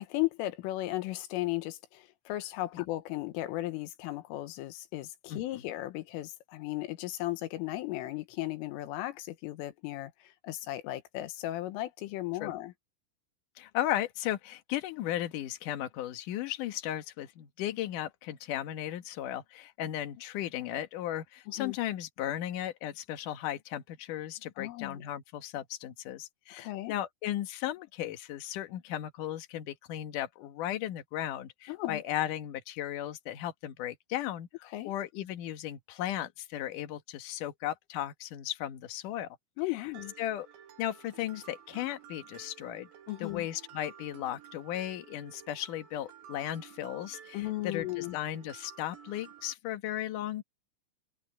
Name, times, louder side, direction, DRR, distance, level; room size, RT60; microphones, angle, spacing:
voice 1, 0.0-12.7 21.6-21.8 24.6-25.0 26.6-26.9 31.7-32.0 34.7-34.9 39.6-40.1 43.1-43.5 47.3-48.2, left 17 dB, 85° left, 3.8 m, -36 dB
voice 2, 5.3-5.6 12.4-12.5 13.6-39.3 39.7-39.9 40.2-40.5 40.8-42.9 43.2-50.4, left 12 dB, 65° left, 2.1 m, -36 dB
Mallet percussion, 39.9-49.5, right 9 dB, 65° right, 4.5 m, -53 dB
omnidirectional pair, 5.7 m